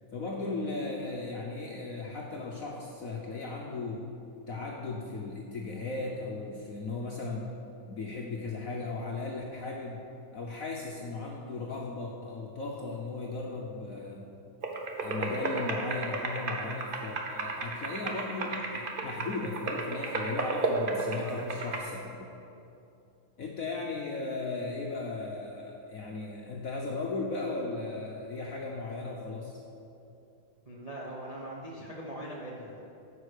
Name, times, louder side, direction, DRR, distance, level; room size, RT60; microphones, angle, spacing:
voice 1, 0.1-4.0 4.5-7.5 7.8-10.0 10.3-14.3 15.0-22.1 23.4-29.6, left 3 dB, 60° left, -1 dB, 0.9 m, -36 dB
sound 1, 14.6-21.8, right 3 dB, 85° right, 0.4 m, -33 dB
voice 2, 30.7-32.8, right 1 dB, 40° right, -4 dB, 0.5 m, -41 dB
9.5 x 5.5 x 6.5 m, 2.7 s
omnidirectional pair, 2.3 m